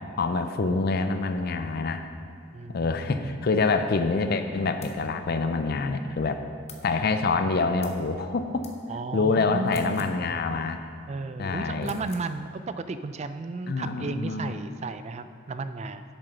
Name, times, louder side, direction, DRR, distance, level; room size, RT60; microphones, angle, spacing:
voice 1, 0.2-2.0 2.7-6.4 6.8-8.7 9.1-10.8 11.4-11.9 13.7-14.6, left 3 dB, 50° left, 8 dB, 0.5 m, -26 dB
voice 2, 2.5-3.3 8.9-10.2 11.1-16.0, right 3 dB, 35° right, 11 dB, 0.3 m, -34 dB
sound 1, 4.8-5.0 6.7-6.9 7.8-8.0 8.6-8.8 9.6-10.2 11.8-12.3, left 7 dB, 35° left, 0.8 m, -47 dB
8.1 x 7.5 x 5.7 m, 2.5 s
head